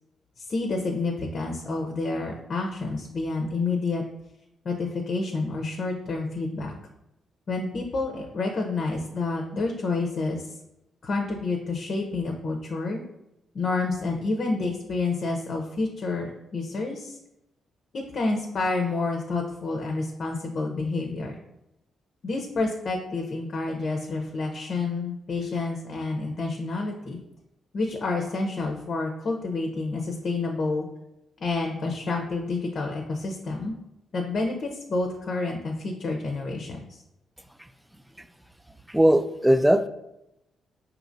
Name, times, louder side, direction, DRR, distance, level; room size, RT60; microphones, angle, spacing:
voice 1, 0.5-4.0 4.6-6.7 7.5-10.4 11.0-13.0 13.5-17.2 17.9-21.4 22.2-27.2 27.7-30.9 31.4-33.7 34.1-36.8, left 3 dB, 55° left, 2 dB, 0.6 m, -29 dB
voice 2, 38.9-39.9, equal, 5° right, 10 dB, 0.3 m, -19 dB
4.9 x 2.8 x 2.6 m, 0.86 s
supercardioid pair, 55°, 0 cm